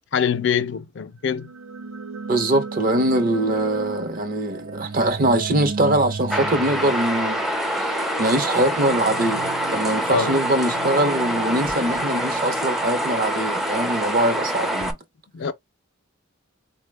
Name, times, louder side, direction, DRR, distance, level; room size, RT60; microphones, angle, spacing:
voice 1, 0.1-1.5 10.1-10.4 15.3-15.5, left 7 dB, 55° left, 0.4 m, -24 dB
sound 1, 1.3-13.2, right 4 dB, 85° right, 0.6 m, -35 dB
voice 2, 2.3-15.0, right 1 dB, 45° right, 0.7 m, -22 dB
sound 2, 6.3-14.9, right 1 dB, ahead, 0.4 m, -25 dB
4.1 x 2.1 x 3.2 m
head